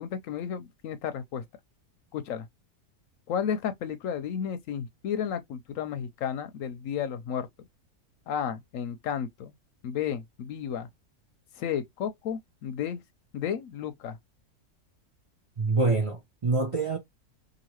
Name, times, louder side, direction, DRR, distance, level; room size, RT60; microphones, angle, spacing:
voice 1, 0.0-1.4 2.1-2.5 3.3-7.7 8.3-9.5 9.8-10.9 11.6-13.0 13.3-14.2, left 8 dB, 70° left, 0.9 m, -33 dB
voice 2, 15.6-17.0, right 3 dB, 60° right, 0.3 m, -26 dB
2.8 x 2.7 x 3.0 m
omnidirectional pair, 1.6 m